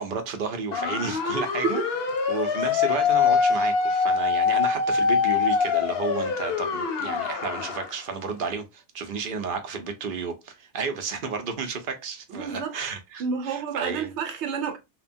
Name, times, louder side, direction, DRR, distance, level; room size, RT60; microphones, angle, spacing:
voice 1, 0.0-1.8 2.3-14.1, right 5 dB, 55° right, 0.7 m, -32 dB
sound 1, 0.7-7.9, left 5 dB, 65° left, 0.8 m, -24 dB
voice 2, 12.3-12.8 13.2-14.8, right 6 dB, 75° right, 1.0 m, -29 dB
2.9 x 2.2 x 2.5 m
omnidirectional pair, 1.2 m